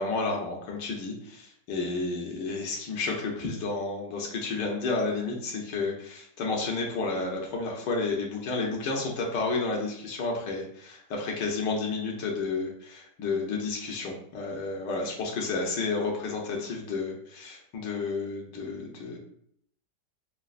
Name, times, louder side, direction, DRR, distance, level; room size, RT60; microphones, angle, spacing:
voice 1, 0.0-19.2, left 3 dB, 80° left, -1 dB, 1.5 m, -31 dB
6.2 x 2.3 x 2.4 m, 0.68 s
omnidirectional pair, 1.9 m